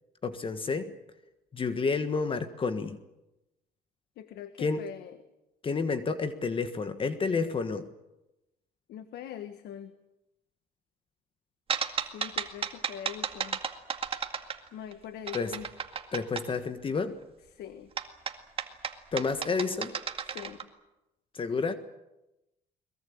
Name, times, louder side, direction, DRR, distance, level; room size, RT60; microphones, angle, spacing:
voice 1, 0.2-0.9 1.5-3.0 4.6-4.8 5.6-7.9 15.3-15.6 16.1-17.2 19.1-19.9 21.3-21.7, left 4 dB, 30° left, 10 dB, 1.5 m, -30 dB
voice 2, 4.2-5.1 8.9-9.9 12.1-13.6 14.7-15.6 17.6-17.9 20.3-20.6, left 9 dB, 70° left, 10 dB, 1.5 m, -42 dB
sound 1, 11.7-14.9 15.3-16.5 18.0-20.6, right 6 dB, 35° right, 2.1 m, -33 dB
22.0 x 22.0 x 8.6 m, 0.96 s
cardioid pair, 110°, 17 cm